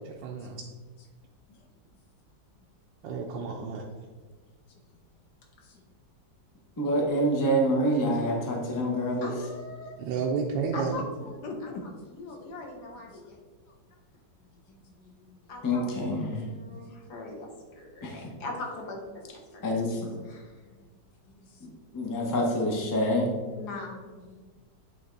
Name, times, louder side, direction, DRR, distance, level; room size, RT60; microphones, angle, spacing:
voice 1, 0.0-0.6 3.0-3.8 10.0-11.0, right 5 dB, 85° right, -1 dB, 1.3 m, -31 dB
voice 2, 6.8-9.3 15.6-16.4 18.0-18.3 19.6-20.2 21.6-23.3, equal, 15° left, -1 dB, 0.6 m, -27 dB
voice 3, 9.2-10.0 10.7-13.4 15.5-15.8 16.2-19.6 20.3-20.5 23.5-24.1, left 2 dB, 65° left, -1 dB, 1.7 m, -41 dB
voice 4, 11.4-11.8 13.1-13.2 14.7-15.4 16.6-17.0 20.7-20.9 21.3-21.5 24.2-24.5, left 3 dB, 80° left, 2 dB, 1.7 m, -45 dB
8.6 x 3.4 x 3.9 m, 1.4 s
omnidirectional pair, 1.9 m